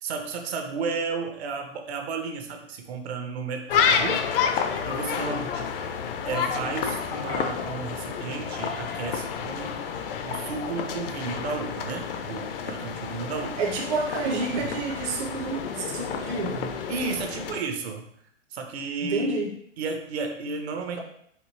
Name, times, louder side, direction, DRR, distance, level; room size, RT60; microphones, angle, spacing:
voice 1, 0.0-4.2 4.8-5.7 6.2-9.8 10.2-13.6 14.2-14.7 16.9-18.1 18.5-19.4 19.8-21.0, right 4 dB, 60° right, 4 dB, 0.8 m, -33 dB
sound 1, 3.7-17.6, left 7 dB, 50° left, 0.5 m, -30 dB
voice 2, 12.2-12.6 13.6-16.7 19.0-19.5 20.9-21.0, right 4 dB, 25° right, -1 dB, 0.5 m, -30 dB
4.3 x 2.6 x 3.1 m, 0.70 s
hypercardioid pair, 135°, 36 cm